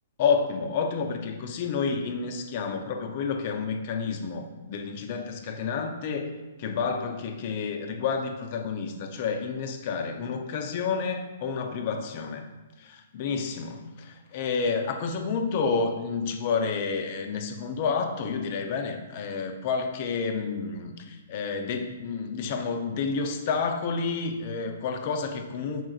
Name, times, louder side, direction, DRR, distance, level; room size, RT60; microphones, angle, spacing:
voice 1, 0.2-6.3 6.6-12.5 12.8-25.9, left 5 dB, 45° left, 5 dB, 0.4 m, -30 dB
4.6 x 3.6 x 2.4 m, 1.2 s
figure-of-eight pair, 120°, 0 cm